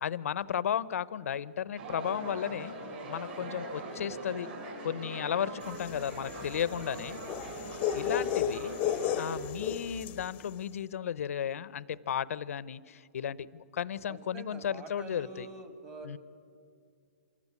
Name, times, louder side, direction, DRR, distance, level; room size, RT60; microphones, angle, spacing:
voice 1, 0.0-2.7 3.1-4.5 4.8-7.2 7.9-8.8 9.2-15.5 16.0-16.2, left 9 dB, 70° left, 19 dB, 0.6 m, -34 dB
sound 1, 1.8-9.3, right 1 dB, 40° right, 5.9 m, -41 dB
sound 2, 5.7-10.3, left 9 dB, 20° left, 0.7 m, -33 dB
voice 2, 14.1-16.2, right 3 dB, 20° right, 7 dB, 2.0 m, -46 dB
26.0 x 13.5 x 9.6 m, 2.3 s
hypercardioid pair, 160°, 8 cm